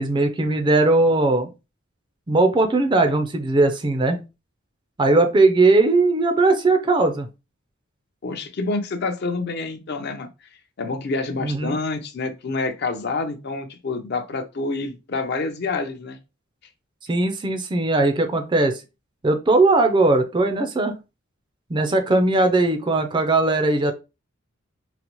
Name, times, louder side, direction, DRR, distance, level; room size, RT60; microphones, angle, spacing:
voice 1, 0.0-1.5 2.3-4.2 5.0-7.3 11.4-11.8 17.1-18.8 19.2-20.9 21.7-23.9, right 2 dB, 20° right, 0.4 m, -19 dB
voice 2, 8.2-10.3 10.8-16.2, left 3 dB, 50° left, 0.5 m, -27 dB
4.0 x 2.0 x 2.9 m
head